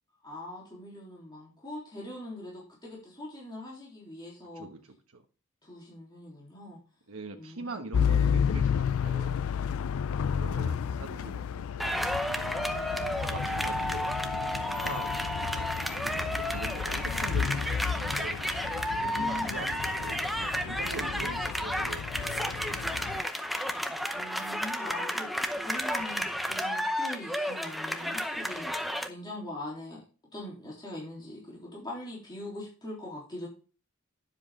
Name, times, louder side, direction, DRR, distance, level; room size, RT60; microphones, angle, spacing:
voice 1, 0.2-4.7 5.6-6.8 7.4-8.1 10.2-11.1 12.6-13.4 19.0-19.7 24.1-28.7 29.1-30.0 30.3-33.5, left 1 dB, 20° left, -4 dB, 3.4 m, -42 dB
voice 2, 4.5-5.2 7.1-9.4 10.4-12.5 13.2-14.3 14.8-15.4 15.9-18.4 18.7-22.4 22.7-23.4, right 3 dB, 75° right, 4 dB, 1.2 m, -43 dB
sound 1, 7.9-23.2, left 7 dB, 70° left, 0.4 m, -32 dB
sound 2, 11.8-29.1, equal, ahead, 0.7 m, -32 dB
10.5 x 7.4 x 3.7 m, 0.35 s
head